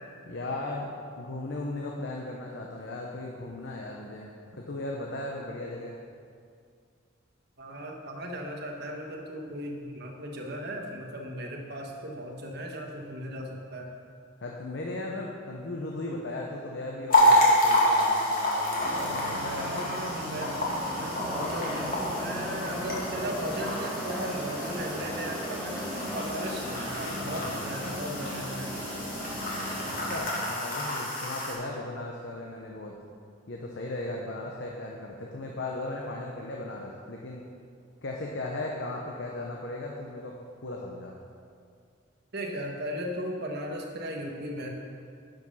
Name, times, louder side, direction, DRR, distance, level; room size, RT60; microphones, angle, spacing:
voice 1, 0.2-0.9 1.2-6.0 14.4-19.8 29.9-33.0 33.5-37.5 38.0-40.4 40.6-41.2, left 2 dB, 60° left, -1 dB, 0.8 m, -37 dB
voice 2, 7.6-13.9 19.5-20.5 20.9-28.7 42.3-44.7, right 1 dB, 55° right, 1 dB, 1.3 m, -36 dB
sound 1, 17.1-31.5, left 1 dB, 45° left, 2.1 m, -28 dB
sound 2, 18.8-30.2, equal, 85° right, 2.5 m, -37 dB
sound 3, 21.2-26.9, equal, ahead, 0.3 m, -40 dB
10.5 x 5.3 x 5.5 m, 2.3 s
head